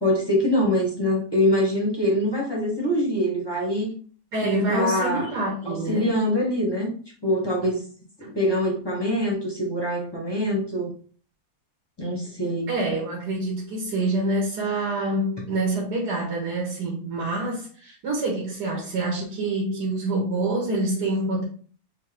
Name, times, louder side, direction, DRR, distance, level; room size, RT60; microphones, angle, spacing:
voice 1, 0.0-3.9 4.7-5.3 5.6-6.9 7.2-7.9 8.2-10.9 12.0-12.7, left 1 dB, 20° left, 1.0 m, -24 dB
voice 2, 4.3-6.2 8.2-8.4 12.7-21.4, right 2 dB, 90° right, 1.7 m, -26 dB
4.6 x 2.9 x 3.5 m
omnidirectional pair, 1.7 m